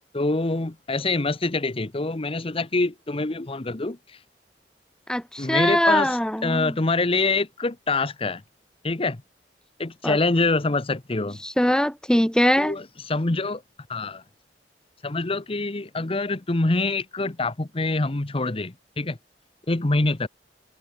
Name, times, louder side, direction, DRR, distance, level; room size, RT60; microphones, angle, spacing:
voice 1, 0.1-4.0 5.4-8.4 8.8-9.2 9.8-11.4 12.6-13.6 13.9-14.2 15.0-19.2 19.7-20.3, left 3 dB, 35° left, 1.0 m, -25 dB
voice 2, 5.1-6.7 10.0-10.2 11.4-12.7, equal, 5° left, 1.2 m, -22 dB
head